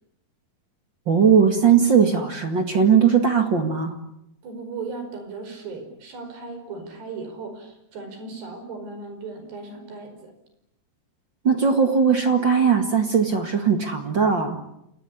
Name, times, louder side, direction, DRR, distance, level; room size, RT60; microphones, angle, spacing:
voice 1, 1.1-4.0 11.4-14.6, right 6 dB, 40° right, 6 dB, 1.9 m, -19 dB
voice 2, 4.4-10.3, right 4 dB, 85° right, 6 dB, 7.2 m, -37 dB
28.5 x 18.0 x 9.9 m, 0.80 s
omnidirectional pair, 4.6 m